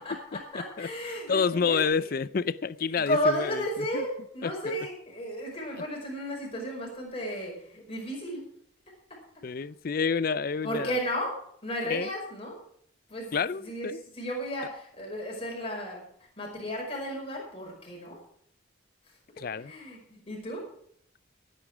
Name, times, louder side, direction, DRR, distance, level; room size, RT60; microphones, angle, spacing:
voice 1, 0.0-2.1 2.9-8.5 9.1-9.2 10.6-12.6 13.1-16.0 16.4-18.2 19.1-19.2 19.6-20.7, equal, 30° left, 5.2 m, -34 dB
voice 2, 0.5-0.9 1.3-3.6 3.9-4.0 4.4-4.7 9.4-11.0 11.9-12.1 13.3-14.0 19.4-19.7, left 5 dB, 45° left, 0.4 m, -29 dB
16.0 x 9.5 x 4.9 m
head